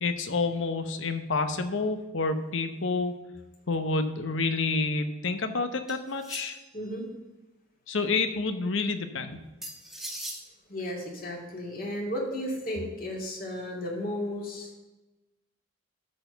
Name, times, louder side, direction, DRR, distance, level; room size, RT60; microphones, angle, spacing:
voice 1, 0.0-3.1 3.7-6.6 7.9-9.4, left 3 dB, 75° left, 8 dB, 0.9 m, -28 dB
sound 1, 5.9-6.8 9.6-10.4, right 1 dB, ahead, 1.1 m, -39 dB
voice 2, 6.7-7.0 10.7-14.7, left 1 dB, 45° left, -2 dB, 2.3 m, -34 dB
12.5 x 4.4 x 6.8 m, 1.1 s
head